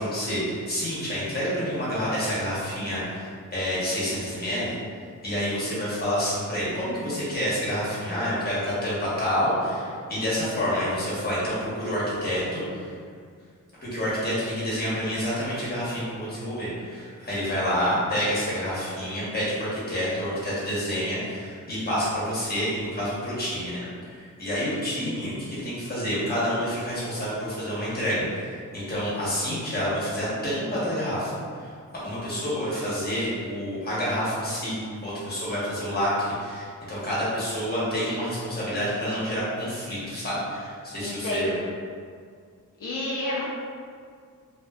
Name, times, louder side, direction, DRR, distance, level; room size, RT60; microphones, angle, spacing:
voice 1, 0.0-4.8 5.2-12.8 13.8-31.3 31.6-31.7 32.0-34.7 35.0-41.6, equal, 30° left, -9 dB, 1.0 m, -28 dB
voice 2, 41.0-41.6 42.8-43.5, left 1 dB, 75° left, -7 dB, 0.5 m, -29 dB
2.5 x 2.4 x 2.3 m, 2.1 s
wide cardioid pair, 85°, 33 cm